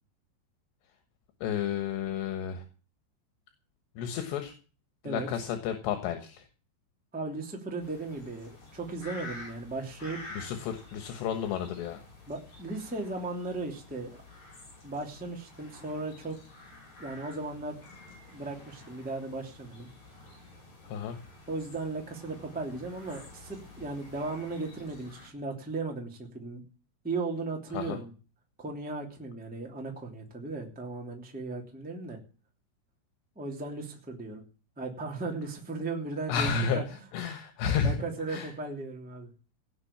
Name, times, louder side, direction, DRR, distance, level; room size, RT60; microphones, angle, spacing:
voice 1, 1.4-2.6 4.0-4.5 5.0-6.4 10.4-12.0 20.9-21.2 27.7-28.0 36.3-36.8 37.1-38.0 38.3-38.5, left 7 dB, 75° left, 7 dB, 3.5 m, -31 dB
voice 2, 7.1-10.2 12.3-14.2 14.8-16.4 17.0-17.8 18.3-19.9 21.5-26.6 27.0-28.1 28.6-32.2 33.3-34.4 34.7-36.8 37.8-39.3, right 3 dB, 5° right, 1 dB, 1.8 m, -36 dB
sound 1, 7.8-25.3, left 2 dB, 40° left, 6.5 m, -50 dB
17.5 x 6.5 x 8.6 m, 0.38 s
omnidirectional pair, 5.1 m